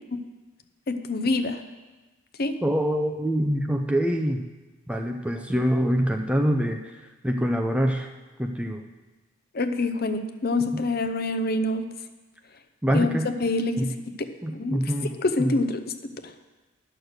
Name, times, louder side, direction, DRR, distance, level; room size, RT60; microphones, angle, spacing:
voice 1, 0.9-1.6 2.4-2.5 9.5-11.8 12.9-13.1 13.4-13.9 14.2-14.8 15.2-15.8 16.2-16.3, left 2 dB, 45° left, 8 dB, 0.6 m, -26 dB
voice 2, 2.6-4.4 4.9-6.8 7.2-8.1 8.4-8.8 10.7-10.8 12.8-13.3 13.8-13.9 14.4-15.1 15.4-15.5, equal, 5° right, 3 dB, 0.4 m, -25 dB
10.5 x 6.4 x 6.5 m, 1.2 s
head